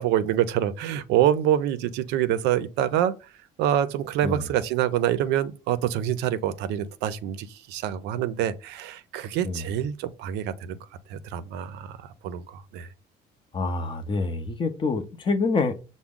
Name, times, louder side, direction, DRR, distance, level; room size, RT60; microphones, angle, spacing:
voice 1, 0.0-3.1 3.6-10.8 11.1-12.9, right 11 dB, 90° right, 0.5 m, -26 dB
voice 2, 13.5-15.8, left 3 dB, 30° left, 0.6 m, -26 dB
5.9 x 2.1 x 3.6 m
cardioid pair, 110°, 17 cm